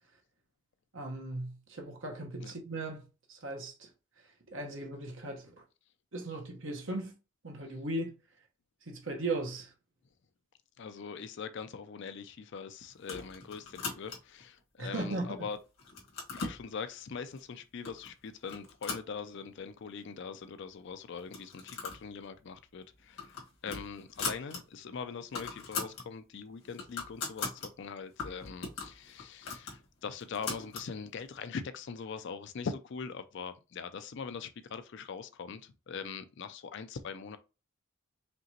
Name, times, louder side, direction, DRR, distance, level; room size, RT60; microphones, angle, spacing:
voice 1, 0.9-3.0 3.3-3.9 4.5-5.4 6.1-7.1 7.4-8.1 8.9-9.7 14.8-15.5, right 2 dB, 65° right, 1.3 m, -37 dB
voice 2, 10.8-15.6 16.3-37.4, left 5 dB, 55° left, 0.4 m, -42 dB
sound 1, 13.0-14.4 15.0-15.5 15.8-16.6 17.4-17.5 17.8-18.1 18.4-19.7 20.0-20.1 20.3-20.4 21.2-22.1 22.4-22.6 23.0-24.6 24.9-25.0 25.2-26.1 26.5-27.7 28.2-30.9, left 5 dB, 85° left, 1.7 m, -40 dB
5.1 x 2.9 x 2.9 m
head